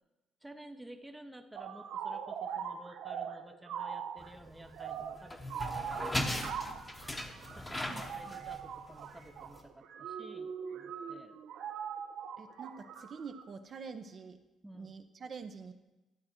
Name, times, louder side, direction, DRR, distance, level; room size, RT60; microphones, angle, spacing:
voice 1, 0.4-6.5 7.5-11.4 14.6-14.9, right 1 dB, 10° right, 6 dB, 0.7 m, -53 dB
sound 1, 1.5-13.4, right 7 dB, 80° right, 0.9 m, -41 dB
sound 2, 4.2-9.6, left 1 dB, 15° left, 1.0 m, -39 dB
voice 2, 7.9-8.3 12.4-14.4 14.7-15.7, right 5 dB, 40° right, 7 dB, 0.6 m, -46 dB
12.0 x 7.6 x 4.4 m, 1.0 s
cardioid pair, 125°, 0 cm